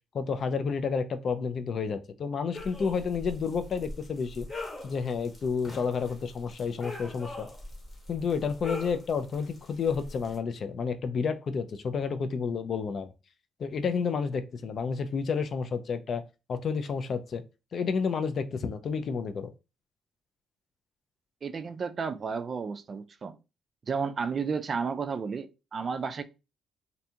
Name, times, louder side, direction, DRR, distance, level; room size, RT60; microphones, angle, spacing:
voice 1, 0.1-4.5 4.8-7.5 8.1-13.1 13.6-16.2 16.5-17.4 17.7-19.5, left 5 dB, 55° left, 0.3 m, -30 dB
sound 1, 2.5-10.4, left 2 dB, 35° left, 0.9 m, -42 dB
voice 2, 21.4-23.4 23.8-26.2, right 5 dB, 45° right, 0.3 m, -32 dB
2.6 x 2.2 x 2.7 m
cardioid pair, 90°, 0 cm